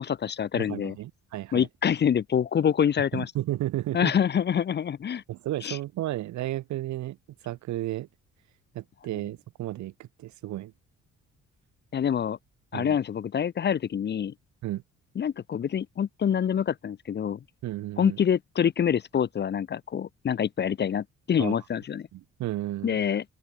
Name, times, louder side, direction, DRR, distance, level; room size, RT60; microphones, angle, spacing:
voice 1, 0.0-1.0 1.5-3.3 3.9-5.2 5.6-5.8 11.9-12.4 12.7-14.3 15.2-17.4 18.0-22.1 22.8-23.2, left 8 dB, 35° left, 0.5 m, -26 dB
voice 2, 0.5-1.7 3.1-4.1 5.3-7.2 7.4-8.1 8.7-10.7 12.7-13.0 14.6-14.8 17.6-18.2 21.4-21.6 22.1-23.1, right 15 dB, 70° right, 0.7 m, -33 dB
open air
cardioid pair, 90°, 30 cm